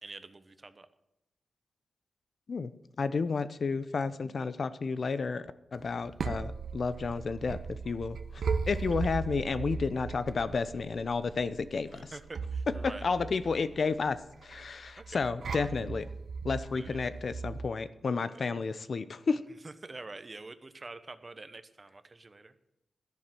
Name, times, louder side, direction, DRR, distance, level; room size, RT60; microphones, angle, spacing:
voice 1, 0.0-0.9 11.9-13.1 15.0-15.3 16.7-17.1 18.3-18.5 19.6-22.5, right 3 dB, 30° right, 11 dB, 1.1 m, -46 dB
voice 2, 3.0-12.1 12.7-16.1 16.4-19.4, left 4 dB, 55° left, 13 dB, 0.9 m, -32 dB
sound 1, 5.8-17.7, right 5 dB, 75° right, 1.0 m, -38 dB
13.0 x 11.0 x 7.6 m, 0.88 s
wide cardioid pair, 90°, 0 cm